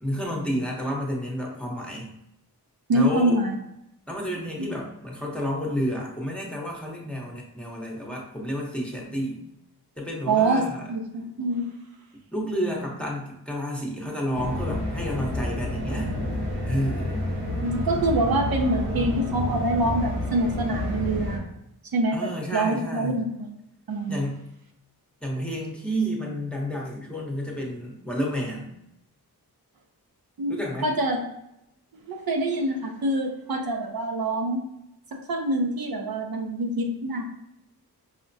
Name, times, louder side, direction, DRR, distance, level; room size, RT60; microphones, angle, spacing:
voice 1, 0.0-2.1 2.9-3.4 4.1-9.4 10.0-10.9 12.3-16.1 16.7-17.2 22.1-23.3 24.1-24.4 25.2-28.7 30.5-30.9, equal, 5° left, -2 dB, 0.9 m, -30 dB
voice 2, 2.9-3.5 4.6-4.7 10.3-11.7 17.6-21.5 21.9-23.5 23.9-24.2 30.4-31.2 32.0-34.6 35.1-37.2, right 1 dB, 65° right, 2 dB, 0.6 m, -25 dB
sound 1, 14.3-21.4, left 1 dB, 85° right, 1.1 m, -29 dB
4.9 x 2.1 x 2.6 m, 0.83 s
cardioid pair, 60°, 39 cm